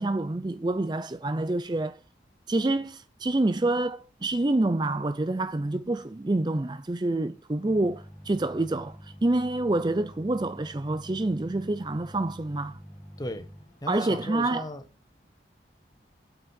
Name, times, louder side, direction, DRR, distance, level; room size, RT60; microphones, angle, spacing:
voice 1, 0.0-2.0 2.5-12.8 13.9-14.7, right 2 dB, 25° right, 0.4 m, -27 dB
sound 1, 7.6-14.3, equal, 40° left, 3.2 m, -48 dB
voice 2, 13.8-14.8, equal, 20° left, 1.1 m, -35 dB
8.8 x 5.8 x 6.3 m
head